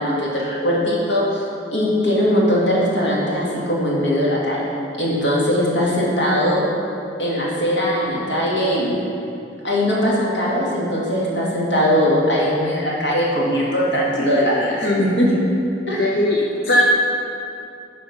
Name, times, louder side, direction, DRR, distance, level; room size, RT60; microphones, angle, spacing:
voice 1, 0.0-1.4 1.7-4.6 5.0-6.6 7.2-9.0 9.6-15.3 15.9-16.0, equal, 75° left, -6 dB, 2.2 m, -20 dB
voice 2, 16.0-16.8, left 1 dB, 55° left, -3 dB, 0.7 m, -19 dB
9.6 x 5.0 x 5.8 m, 2.6 s
head